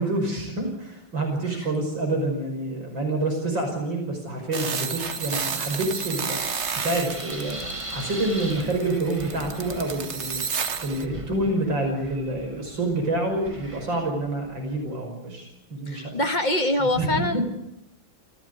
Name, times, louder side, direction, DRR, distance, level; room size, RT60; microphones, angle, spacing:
voice 1, 0.0-6.4 6.8-16.2 17.0-17.4, right 2 dB, 70° right, 3 dB, 6.3 m, -27 dB
sound 1, 4.5-11.0, right 6 dB, 40° right, 1.3 m, -32 dB
Wind, 5.0-15.0, right 1 dB, 15° right, 2.1 m, -41 dB
voice 2, 15.9-17.4, left 1 dB, 25° left, 6 dB, 1.9 m, -24 dB
26.5 x 17.0 x 9.6 m, 0.86 s
omnidirectional pair, 2.1 m